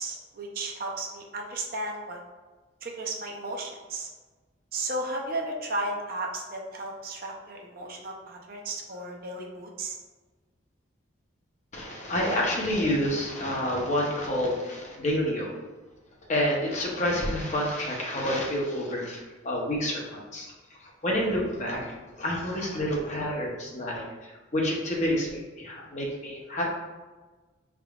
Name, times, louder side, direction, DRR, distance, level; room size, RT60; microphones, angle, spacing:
voice 1, 0.0-2.2 2.8-4.1 4.7-9.9, right 2 dB, 45° right, 0 dB, 0.5 m, -34 dB
voice 2, 11.7-15.6 16.3-21.9 22.2-26.8, equal, 35° left, -2 dB, 0.8 m, -29 dB
4.6 x 3.6 x 2.3 m, 1.3 s
head